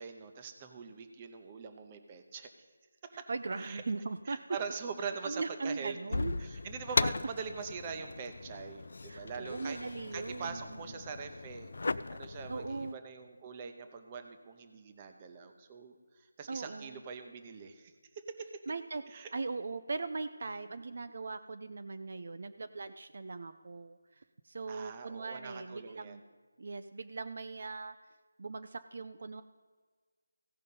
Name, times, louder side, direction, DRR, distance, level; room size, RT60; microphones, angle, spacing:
voice 1, 0.0-2.5 3.0-3.3 3.6-3.8 4.3-6.0 6.4-9.8 10.1-11.7 12.1-18.5 19.1-19.3 24.7-26.2, right 5 dB, 20° right, 7 dB, 0.7 m, -43 dB
voice 2, 3.1-4.4 5.2-6.3 9.1-10.8 12.5-13.0 16.5-17.0 18.7-26.2 26.6-28.0 28.4-29.4, right 3 dB, 50° right, 10 dB, 0.4 m, -39 dB
sound 1, 6.1-12.9, left 3 dB, 60° left, 0.3 m, -37 dB
16.0 x 5.4 x 5.4 m, 1.5 s
figure-of-eight pair, 170°, 0 cm